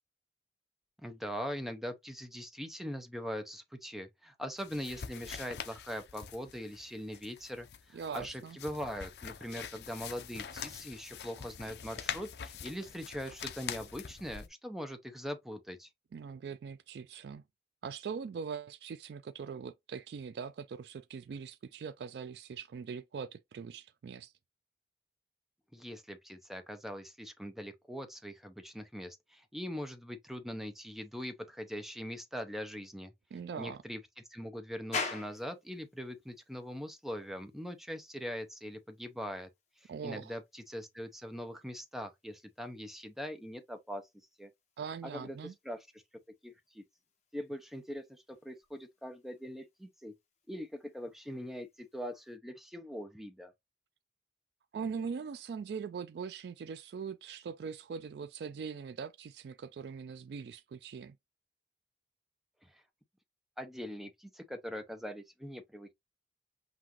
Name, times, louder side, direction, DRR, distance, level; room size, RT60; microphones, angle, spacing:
voice 1, 1.0-15.9 25.7-33.1 33.6-34.0 34.3-39.5 39.8-44.0 44.4-44.5 45.0-45.4 45.6-45.9 46.4-46.8 47.3-50.1 50.5-53.5 62.6-62.8 63.6-65.9, equal, ahead, 0.6 m, -42 dB
sound 1, 4.6-14.5, left 7 dB, 65° left, 0.5 m, -44 dB
voice 2, 7.9-8.6 16.1-17.4 17.8-24.3 33.3-33.8 39.9-40.4 44.8-45.5 54.7-61.2, right 6 dB, 65° right, 0.3 m, -41 dB
sound 2, 34.9-52.4, left 4 dB, 40° left, 1.3 m, -49 dB
5.7 x 2.5 x 3.0 m
head